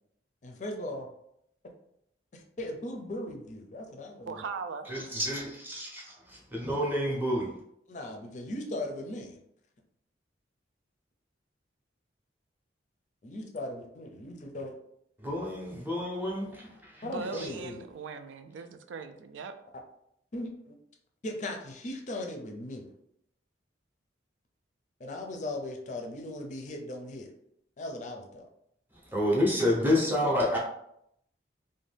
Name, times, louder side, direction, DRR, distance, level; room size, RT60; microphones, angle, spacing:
voice 1, 0.4-1.1 2.3-4.4 7.9-9.4 13.2-14.7 17.0-18.0 20.3-20.7 21.2-22.9 25.0-27.3 27.8-28.5, left 1 dB, 40° left, 0.4 m, -38 dB
voice 2, 4.3-4.9 17.0-19.5, right 5 dB, 85° right, 0.3 m, -39 dB
voice 3, 4.9-7.6 15.2-17.0 17.3-17.5 29.0-30.6, left 1 dB, 10° right, 0.6 m, -29 dB
2.6 x 2.2 x 3.3 m
head